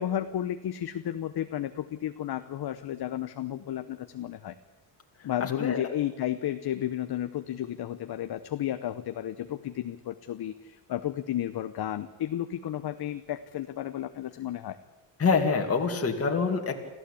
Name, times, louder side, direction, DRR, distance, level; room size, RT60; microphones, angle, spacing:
voice 1, 0.0-4.5 5.2-14.8, left 11 dB, 55° left, 9 dB, 1.0 m, -33 dB
voice 2, 5.4-5.8 15.2-16.8, left 5 dB, 30° left, 2 dB, 2.5 m, -26 dB
26.5 x 14.5 x 8.5 m, 1.1 s
cardioid pair, 130°, 46 cm